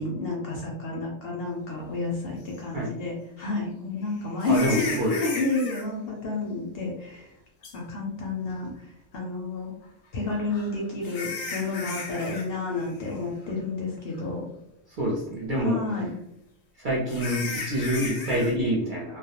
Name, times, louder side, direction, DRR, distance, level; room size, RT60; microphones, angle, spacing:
voice 1, 0.0-7.3 7.7-9.7 10.1-14.4 15.6-16.1, left 3 dB, 65° left, -2 dB, 0.6 m, -30 dB
sound 1, 2.5-2.6 4.4-5.8 7.6-7.7 10.3-12.5 12.7-13.1 13.5-13.6 14.2-14.3 17.1-18.5, left 3 dB, 85° left, 1.0 m, -35 dB
voice 2, 4.5-5.2 15.0-15.8 16.8-19.2, equal, 55° right, -4 dB, 0.6 m, -26 dB
2.3 x 2.0 x 2.8 m, 0.81 s
omnidirectional pair, 1.3 m